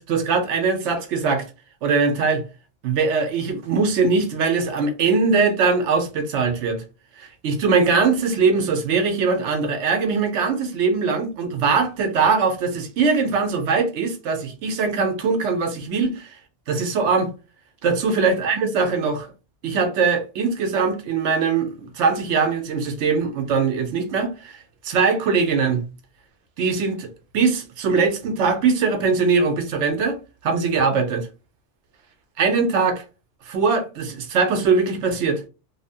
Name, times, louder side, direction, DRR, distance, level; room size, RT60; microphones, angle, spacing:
voice 1, 0.0-1.4 1.8-2.4 2.8-6.8 7.2-16.3 16.7-17.3 17.8-19.3 19.6-25.8 26.6-27.1 27.3-30.2 30.4-31.3 32.4-33.0 33.5-35.4, right 4 dB, 75° right, 0.9 m, -21 dB
2.8 x 2.0 x 2.7 m
omnidirectional pair, 1.2 m